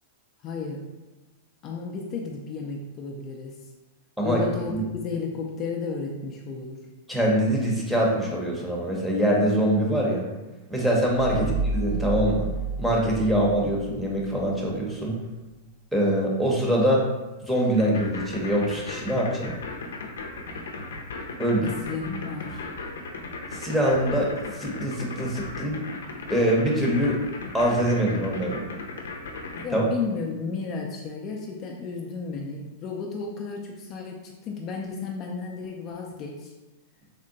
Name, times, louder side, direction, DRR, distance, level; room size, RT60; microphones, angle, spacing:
voice 1, 0.4-0.9 1.6-3.6 4.2-6.9 11.3-11.6 21.6-22.6 29.6-36.5, left 4 dB, 35° left, 0 dB, 0.4 m, -33 dB
voice 2, 7.1-10.3 10.7-12.5 12.8-15.2 15.9-17.0 17.5-19.5 21.4-21.7 23.6-25.8 26.3-27.2 27.5-28.6 29.7-29.8, equal, 5° right, -3 dB, 0.8 m, -24 dB
sound 1, 11.1-14.4, right 4 dB, 65° right, 1.0 m, -30 dB
sound 2, 17.8-29.6, left 3 dB, 90° left, 0.5 m, -36 dB
3.6 x 2.1 x 3.8 m, 1.1 s
hypercardioid pair, 135°, 0 cm